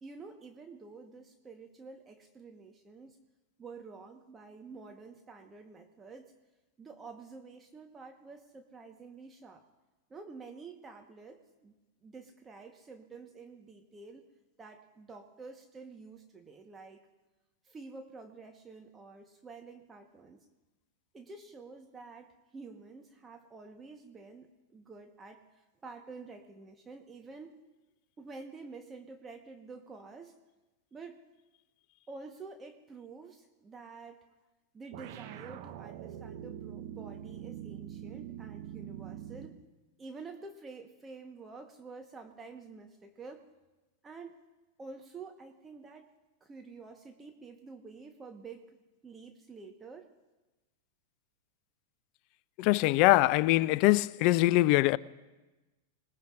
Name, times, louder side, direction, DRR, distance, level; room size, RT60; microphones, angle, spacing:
voice 1, 0.0-3.2 3.6-6.4 6.8-9.6 10.1-11.7 12.0-14.3 14.6-17.0 17.6-20.4 21.1-27.5 28.2-30.3 30.9-31.2 32.1-34.3 34.7-39.6 40.0-43.4 44.0-44.4 44.8-46.1 46.4-48.8 49.0-50.1, right 4 dB, 20° right, 1.2 m, -49 dB
sound 1, 34.9-39.6, right 10 dB, 55° right, 0.9 m, -44 dB
voice 2, 52.6-55.0, left 18 dB, 50° left, 0.4 m, -23 dB
26.5 x 19.5 x 2.5 m
figure-of-eight pair, 95°, 0 cm